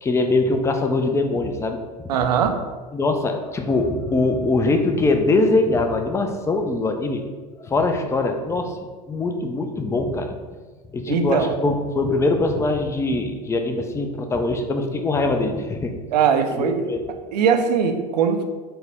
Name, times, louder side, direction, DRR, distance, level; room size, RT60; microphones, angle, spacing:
voice 1, 0.0-1.8 2.9-7.2 7.6-8.8 9.1-10.3 10.9-15.9 16.5-17.1, left 2 dB, 15° left, 5 dB, 0.4 m, -22 dB
voice 2, 2.1-2.6 11.1-11.5 16.1-16.8 17.3-18.4, right 7 dB, 75° right, 7 dB, 0.4 m, -20 dB
4.1 x 2.1 x 3.4 m, 1.4 s
hypercardioid pair, 80°, 21 cm